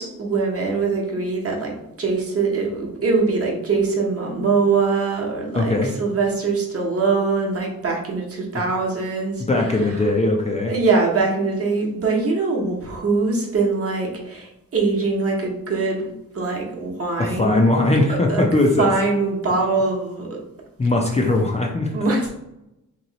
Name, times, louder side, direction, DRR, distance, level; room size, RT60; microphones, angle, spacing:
voice 1, 0.0-9.4 9.7-9.8 10.7-17.7 18.1-18.5 18.8-20.4 21.9-22.3, right 4 dB, 45° right, -1 dB, 0.9 m, -22 dB
voice 2, 5.5-5.9 9.4-10.7 17.2-18.9 20.8-21.9, left 2 dB, 20° left, 0 dB, 0.4 m, -20 dB
3.0 x 2.9 x 3.9 m, 0.88 s
wide cardioid pair, 135°, 33 cm